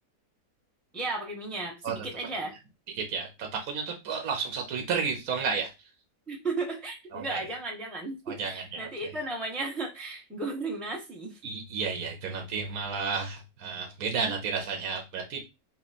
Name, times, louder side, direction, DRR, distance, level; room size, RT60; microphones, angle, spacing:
voice 1, 0.9-2.6 6.3-11.4, right 3 dB, ahead, 0.8 m, -35 dB
voice 2, 3.0-5.7 7.1-7.5 8.3-8.9 11.4-15.4, right 5 dB, 70° right, 1.3 m, -32 dB
3.9 x 3.0 x 4.1 m
omnidirectional pair, 1.6 m